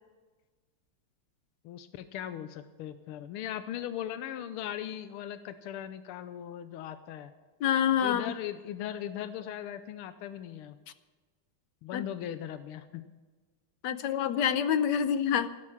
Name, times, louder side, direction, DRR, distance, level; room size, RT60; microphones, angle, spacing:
voice 1, 1.6-7.3 8.0-10.8 11.8-13.1, left 10 dB, 85° left, 11 dB, 1.6 m, -39 dB
voice 2, 7.6-8.3 11.9-12.0 13.8-15.5, left 8 dB, 70° left, 12 dB, 1.1 m, -27 dB
16.5 x 11.0 x 5.7 m, 1.3 s
omnidirectional pair, 2.4 m